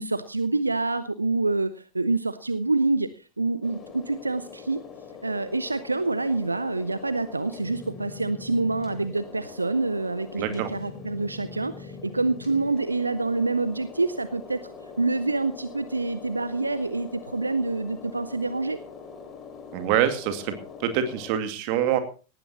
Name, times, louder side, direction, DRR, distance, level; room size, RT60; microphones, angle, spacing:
voice 1, 0.0-4.8 5.2-14.7 15.0-18.8, right 3 dB, 80° right, 14 dB, 0.7 m, -27 dB
sound 1, 3.6-21.4, left 5 dB, 25° left, 3.5 m, -43 dB
voice 2, 10.4-10.7 19.7-20.5 20.8-22.0, right 10 dB, 45° right, 9 dB, 2.3 m, -25 dB
18.5 x 15.5 x 2.9 m, 0.34 s
figure-of-eight pair, 90°, 0 cm